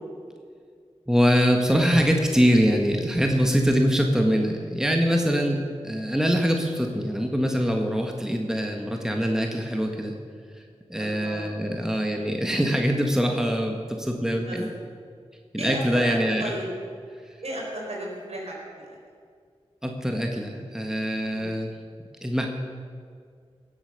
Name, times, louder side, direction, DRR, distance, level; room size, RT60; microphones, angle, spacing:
voice 1, 1.1-10.1 10.9-14.7 15.5-16.4 19.8-21.7 22.2-22.5, equal, 5° right, 2 dB, 1.6 m, -23 dB
voice 2, 10.9-11.9 14.3-14.6 15.6-16.7 17.4-19.0 21.3-21.7, right 1 dB, 70° right, -2 dB, 4.6 m, -35 dB
18.0 x 8.1 x 6.7 m, 2.1 s
wide cardioid pair, 55°, 11 cm